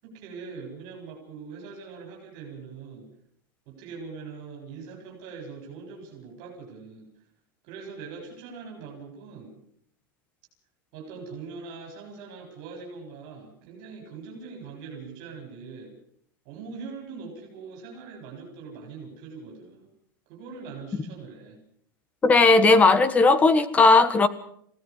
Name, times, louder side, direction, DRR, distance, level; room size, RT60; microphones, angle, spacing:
voice 1, 0.0-3.1 3.7-7.1 7.6-9.5 10.9-15.9 16.4-19.9 20.3-21.6, right 5 dB, 40° right, 0 dB, 7.7 m, -42 dB
voice 2, 22.2-24.3, left 3 dB, 10° left, 13 dB, 1.4 m, -17 dB
29.5 x 18.0 x 5.6 m, 0.65 s
supercardioid pair, 165°, 12 cm